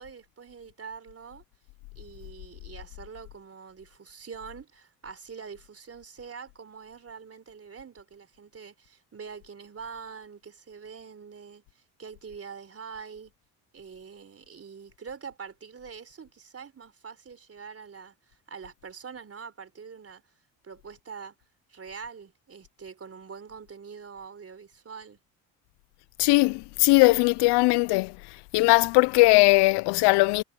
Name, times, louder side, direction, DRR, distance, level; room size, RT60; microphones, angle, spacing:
voice 1, 0.0-1.4 2.0-13.3 13.7-20.2 20.6-21.4 21.7-25.2, right 6 dB, 35° right, 3.9 m, -44 dB
voice 2, 26.2-28.2 28.5-30.4, left 24 dB, 75° left, 0.6 m, -19 dB
supercardioid pair, 70°, 41 cm